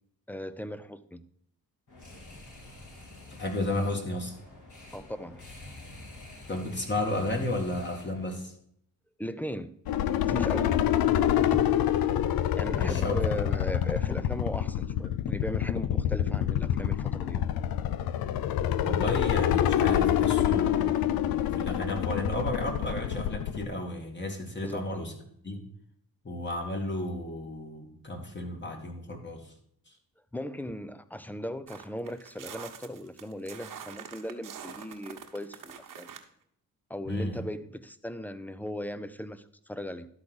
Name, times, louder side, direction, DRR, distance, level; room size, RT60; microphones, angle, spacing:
voice 1, 0.3-1.2 4.9-5.5 9.2-9.7 10.2-10.9 11.5-11.6 12.6-17.4 24.6-24.9 30.3-36.1 36.9-40.1, equal, 5° left, 14 dB, 0.6 m, -37 dB
sound 1, 1.9-8.4, left 2 dB, 50° left, 3.9 m, -48 dB
voice 2, 3.3-4.3 6.5-8.5 12.7-13.4 18.8-25.1 25.4-25.6 26.2-29.5 29.9-30.0 37.1-37.4, left 1 dB, 30° left, 2 dB, 2.2 m, -33 dB
sound 2, 9.9-23.6, left 11 dB, 65° left, 0.6 m, -27 dB
sound 3, 31.7-36.2, right 8 dB, 55° right, 1.2 m, -45 dB
12.0 x 4.0 x 6.1 m, 0.69 s
cardioid pair, 75°, 38 cm